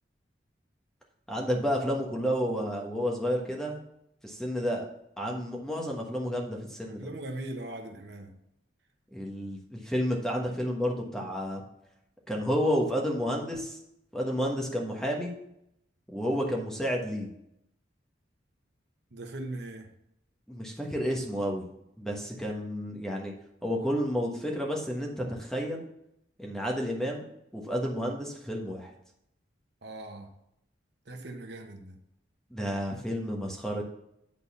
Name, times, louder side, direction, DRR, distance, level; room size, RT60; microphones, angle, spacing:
voice 1, 1.3-3.8 4.2-4.8 5.2-7.0 9.1-11.6 12.3-13.8 14.1-15.3 16.1-17.3 20.5-21.7 22.0-23.3 23.6-25.8 26.4-27.2 27.5-28.9 32.5-33.8, equal, 5° left, 1.3 m, -31 dB
voice 2, 7.0-8.3 19.1-19.9 29.8-30.3 31.1-32.0, right 1 dB, 60° right, 1.0 m, -39 dB
8.8 x 4.1 x 6.9 m
head